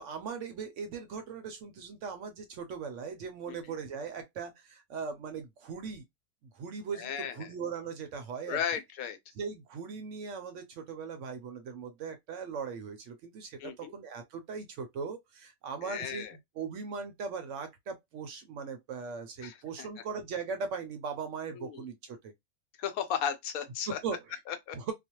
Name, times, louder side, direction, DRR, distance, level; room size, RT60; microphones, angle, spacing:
voice 1, 0.0-6.0 6.5-8.6 9.4-16.2 16.6-22.3 23.9-24.4 24.7-24.9, right 5 dB, 70° right, 0.8 m, -39 dB
voice 2, 6.9-7.5 8.5-9.2 13.6-13.9 15.8-16.3 19.4-19.9 21.5-21.8 22.8-24.0 24.5-24.8, left 8 dB, 80° left, 1.0 m, -35 dB
2.4 x 2.2 x 2.8 m
omnidirectional pair, 1.5 m